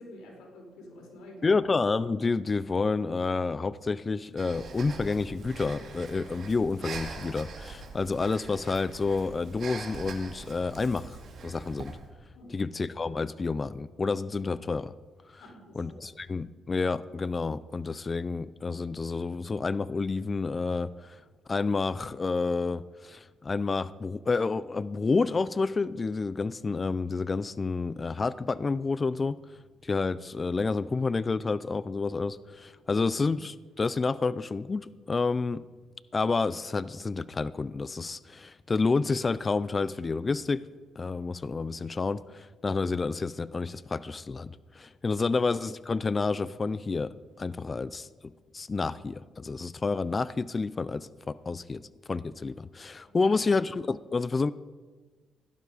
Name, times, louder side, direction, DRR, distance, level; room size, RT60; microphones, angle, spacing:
voice 1, 0.0-1.6 12.3-12.5 15.4-16.0 53.0-53.4, left 1 dB, 85° left, -2 dB, 4.9 m, -48 dB
voice 2, 1.4-11.0 11.4-11.9 12.5-14.9 15.7-20.9 21.5-22.8 23.5-29.4 29.9-32.3 32.9-35.6 36.1-38.2 38.7-40.6 41.0-42.2 42.6-44.5 45.0-47.1 47.4-48.0 48.5-49.1 49.4-51.0 51.5-51.8 52.1-54.5, left 4 dB, 30° left, 17 dB, 0.4 m, -29 dB
Breathing, 4.4-12.0, right 4 dB, 60° right, 2.2 m, -43 dB
16.5 x 12.0 x 5.0 m, 1.4 s
cardioid pair, 90°, 0 cm